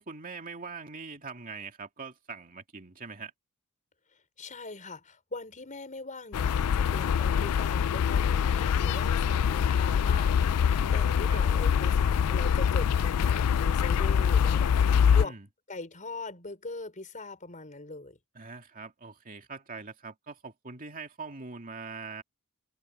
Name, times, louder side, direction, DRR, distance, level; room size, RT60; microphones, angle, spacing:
voice 1, 0.0-3.3 11.3-11.4 14.9-15.5 18.3-22.2, right 4 dB, 40° right, 2.4 m, -42 dB
voice 2, 4.4-15.4 15.7-18.2, left 2 dB, 35° left, 5.1 m, -41 dB
sound 1, 6.3-15.2, left 7 dB, 85° left, 0.4 m, -24 dB
head